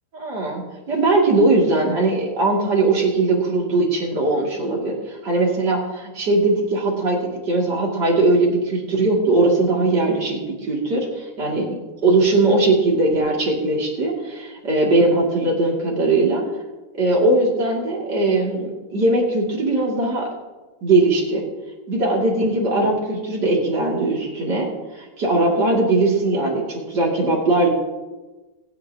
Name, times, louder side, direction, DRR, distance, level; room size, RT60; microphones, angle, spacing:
voice 1, 0.1-5.0 5.2-16.4 16.9-20.3 20.8-21.4 21.9-24.7 25.2-27.7, right 2 dB, 60° right, -3 dB, 3.5 m, -20 dB
23.0 x 9.9 x 3.0 m, 1.2 s
omnidirectional pair, 2.0 m